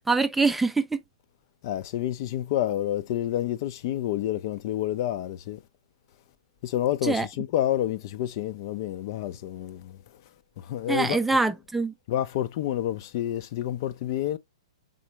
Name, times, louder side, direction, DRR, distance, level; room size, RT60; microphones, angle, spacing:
voice 1, 0.1-1.0 7.0-7.3 10.9-11.9, right 3 dB, 5° right, 0.4 m, -24 dB
voice 2, 1.6-5.6 6.6-10.0 10.6-11.4 12.1-14.4, left 12 dB, 50° left, 0.5 m, -29 dB
4.1 x 3.8 x 2.9 m
hypercardioid pair, 120°, 3 cm